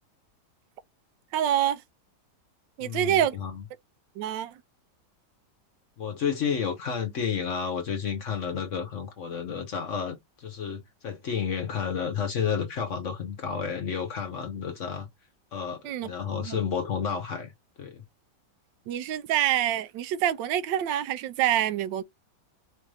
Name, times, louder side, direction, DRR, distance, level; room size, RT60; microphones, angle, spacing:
voice 1, 1.3-1.8 2.8-3.4 4.2-4.6 15.8-16.1 16.3-16.6 18.9-22.0, right 11 dB, 85° right, 1.3 m, -26 dB
voice 2, 2.8-3.6 6.0-15.1 15.5-17.5 17.8-18.0, left 7 dB, 55° left, 0.9 m, -31 dB
4.5 x 2.5 x 3.2 m
omnidirectional pair, 1.9 m